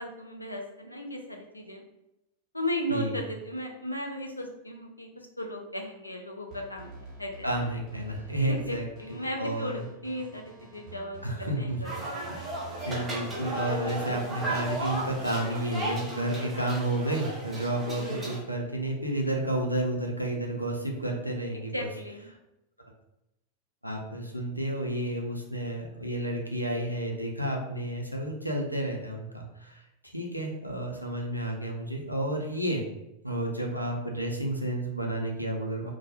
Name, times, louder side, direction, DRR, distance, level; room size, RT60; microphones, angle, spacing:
voice 1, 0.0-1.8 2.5-6.9 7.2-7.7 8.5-11.2 11.6-12.0 21.5-22.3, equal, 85° left, 2 dB, 0.4 m, -36 dB
sound 1, 6.5-15.2, right 3 dB, 35° right, 1.0 m, -48 dB
voice 2, 7.4-8.8 9.1-9.9 11.2-11.8 12.9-21.9 23.8-32.8 33.2-35.9, right 1 dB, 90° right, 0 dB, 0.4 m, -31 dB
sound 2, 11.8-18.4, right 1 dB, 20° right, 0.7 m, -35 dB
2.2 x 2.1 x 2.7 m, 0.90 s
figure-of-eight pair, 90°, 0 cm